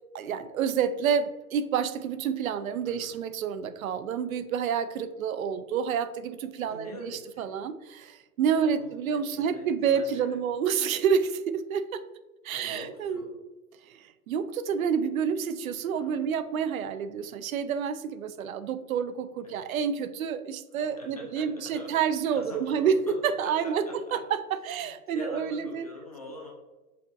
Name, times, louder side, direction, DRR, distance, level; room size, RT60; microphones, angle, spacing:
voice 1, 0.1-7.1 7.4-12.0 12.4-13.2 13.9-23.8 24.1-24.4 24.7-25.8, right 7 dB, 65° right, 12 dB, 0.5 m, -29 dB
voice 2, 2.8-3.2 6.6-7.5 8.5-10.4 12.5-13.5 15.9-16.3 19.4-19.6 20.7-24.3 24.8-26.5, left 1 dB, 30° left, -2 dB, 0.4 m, -44 dB
6.0 x 3.0 x 2.6 m, 1.2 s
hypercardioid pair, 150°, 46 cm